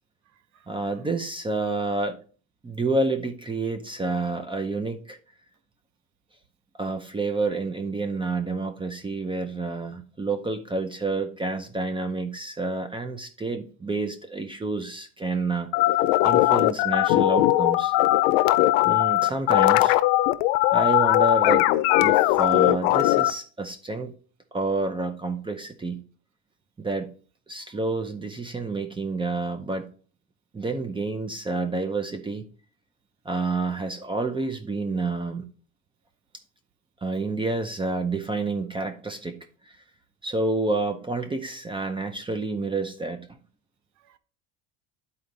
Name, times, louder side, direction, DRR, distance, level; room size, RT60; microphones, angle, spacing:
voice 1, 0.7-2.2 2.6-5.2 6.8-15.7 16.2-17.9 18.8-19.9 20.7-21.7 22.0-24.1 24.5-26.0 26.8-27.1 27.5-29.8 30.5-32.5 33.2-35.4 37.0-39.4 40.2-43.2, right 3 dB, 15° right, 0.7 m, -29 dB
sound 1, 15.7-23.3, left 17 dB, 85° left, 0.6 m, -20 dB
voice 2, 18.3-19.1 44.0-44.2, right 10 dB, 50° right, 0.7 m, -59 dB
10.5 x 4.2 x 3.9 m
cardioid pair, 125°, 36 cm